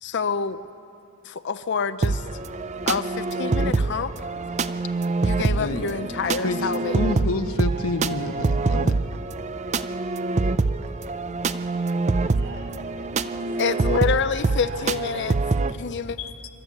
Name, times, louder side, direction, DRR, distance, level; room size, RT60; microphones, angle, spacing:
voice 1, 0.0-0.6 1.2-2.2 2.9-4.1 5.2-7.2 13.6-15.4 15.8-16.2, left 5 dB, 55° left, 12 dB, 0.6 m, -27 dB
sound 1, 2.0-15.7, right 3 dB, 30° right, 0.5 m, -25 dB
voice 2, 6.4-9.0 16.2-16.3, left 2 dB, 70° left, 7 dB, 1.0 m, -28 dB
voice 3, 11.6-12.0 12.2-13.6 14.7-14.9 15.6-15.8, right 2 dB, 60° right, -3 dB, 6.4 m, -45 dB
26.5 x 13.0 x 8.3 m, 2.5 s
head